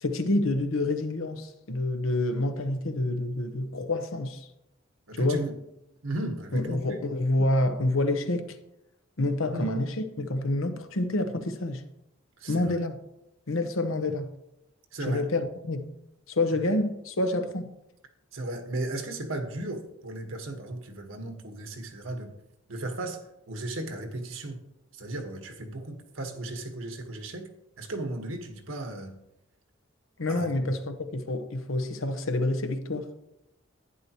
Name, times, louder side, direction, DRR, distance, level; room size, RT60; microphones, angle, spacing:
voice 1, 0.0-4.5 5.1-5.5 6.5-8.6 9.2-11.8 12.5-13.0 13.5-14.3 15.1-15.9 16.3-17.7 30.2-33.1, left 2 dB, 85° left, 1.0 m, -28 dB
voice 2, 5.1-5.5 6.0-6.8 9.5-9.7 12.4-12.8 14.9-15.3 18.3-22.3 22.7-23.2 23.5-24.6 24.9-27.5 27.8-29.1 30.3-30.7, right 2 dB, 80° right, 1.5 m, -35 dB
11.0 x 9.6 x 3.0 m
head